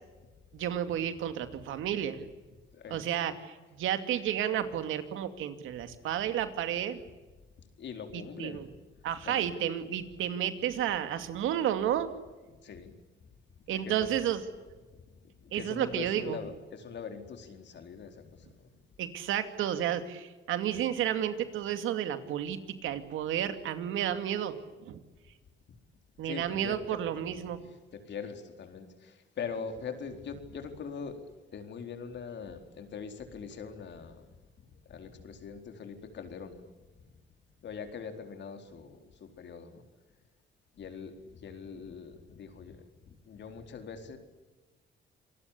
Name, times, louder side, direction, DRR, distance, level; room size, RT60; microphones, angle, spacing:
voice 1, 0.5-2.2 2.9-7.0 8.4-8.6 9.0-12.1 13.7-14.4 15.5-16.4 19.0-24.5 24.8-25.0 26.2-27.6, right 10 dB, 85° right, 9 dB, 2.5 m, -31 dB
voice 2, 2.7-3.3 7.8-8.6 9.2-9.5 12.6-12.9 13.6-14.2 15.4-18.7 26.2-27.0 27.9-31.2 31.5-34.3 34.9-36.6 37.6-39.8 40.8-44.2, left 6 dB, 65° left, 6 dB, 4.3 m, -42 dB
27.0 x 20.0 x 8.4 m, 1.3 s
cardioid pair, 90°, 20 cm